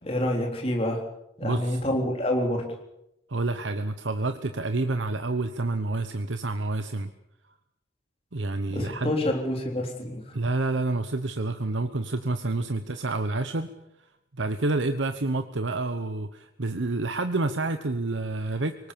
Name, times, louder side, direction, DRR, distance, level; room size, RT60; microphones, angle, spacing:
voice 1, 0.0-1.0 1.4-2.7 8.7-10.2, left 1 dB, 30° left, 1 dB, 3.7 m, -27 dB
voice 2, 1.4-1.8 3.3-7.1 8.3-9.1 10.3-13.7 14.3-18.9, right 2 dB, 90° right, 8 dB, 1.0 m, -28 dB
24.5 x 19.0 x 7.0 m, 0.83 s
head